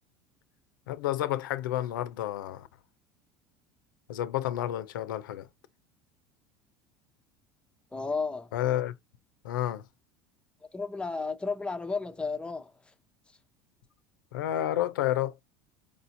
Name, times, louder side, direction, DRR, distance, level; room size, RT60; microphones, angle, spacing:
voice 1, 0.9-2.7 4.1-5.5 8.5-8.9 9.4-9.8 14.3-15.3, left 13 dB, 90° left, 0.6 m, -30 dB
voice 2, 7.9-8.5 10.7-12.7, left 4 dB, 10° left, 0.6 m, -32 dB
5.0 x 2.7 x 2.6 m
supercardioid pair, 95°, 11 cm